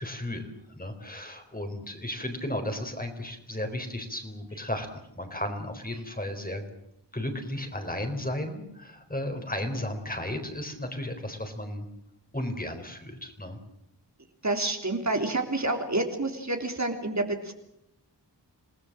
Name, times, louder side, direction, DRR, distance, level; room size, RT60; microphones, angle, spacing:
voice 1, 0.0-6.6 7.1-11.8 12.3-13.6, left 1 dB, 20° left, 5 dB, 4.2 m, -34 dB
voice 2, 14.4-17.5, right 2 dB, 40° right, 4 dB, 3.5 m, -28 dB
27.5 x 18.5 x 7.6 m, 0.80 s
wide cardioid pair, 95°, 42 cm